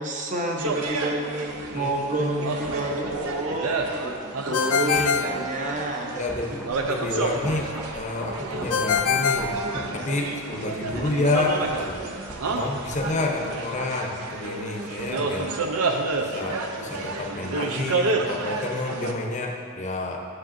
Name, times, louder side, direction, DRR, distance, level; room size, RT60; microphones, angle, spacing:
voice 1, 0.0-4.2 4.4-6.3, right 2 dB, 35° right, 1 dB, 0.8 m, -29 dB
sound 1, 0.6-19.1, right 3 dB, 80° right, 0.6 m, -30 dB
sound 2, 1.4-14.9 15.2-15.3, equal, 5° right, 0.5 m, -43 dB
voice 2, 1.7-2.7 4.9-5.2 6.1-9.6 9.9-12.0 12.5-15.5 16.2-20.2, left 2 dB, 35° left, 1 dB, 0.7 m, -29 dB
Ringtone, 4.5-6.2 8.7-10.4, left 6 dB, 80° left, 0.4 m, -25 dB
9.9 x 6.5 x 2.6 m, 2.2 s
head